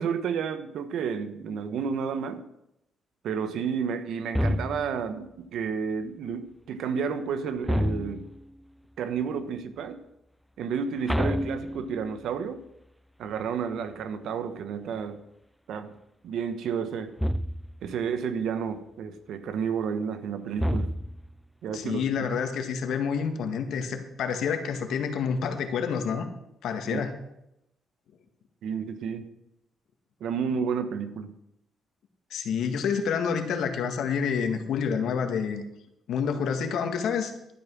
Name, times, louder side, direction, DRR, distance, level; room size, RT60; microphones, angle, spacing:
voice 1, 0.0-2.4 3.2-8.3 9.0-10.0 10.6-12.6 13.2-15.2 15.7-15.9 16.2-17.1 17.8-20.9 21.6-22.1 26.9-27.0 28.6-29.3 30.2-31.3, right 6 dB, 75° right, 10 dB, 1.2 m, -31 dB
sound 1, 4.3-5.1 7.6-8.5 11.1-12.2 17.2-17.9 20.6-21.4, equal, ahead, 0.4 m, -28 dB
voice 2, 21.7-26.2 26.6-27.1 32.3-35.6 36.1-37.3, left 6 dB, 75° left, 6 dB, 1.8 m, -28 dB
12.0 x 9.7 x 6.2 m, 0.84 s
cardioid pair, 90°, 0 cm